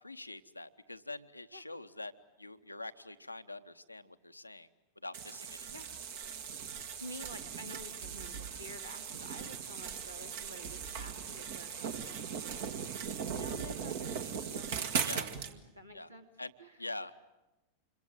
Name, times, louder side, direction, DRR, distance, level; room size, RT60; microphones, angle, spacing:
voice 1, 0.0-2.1 2.4-4.7 5.0-5.7 15.0-15.3 15.9-16.1 16.4-16.5 16.8-17.2, left 2 dB, 85° left, 9 dB, 0.9 m, -44 dB
sound 1, 5.1-15.5, right 7 dB, 55° right, 1.8 m, -39 dB
voice 2, 6.7-16.3 16.6-16.9, equal, 85° right, 5 dB, 2.6 m, -51 dB
27.0 x 22.5 x 9.0 m, 1.0 s
figure-of-eight pair, 90°, 0 cm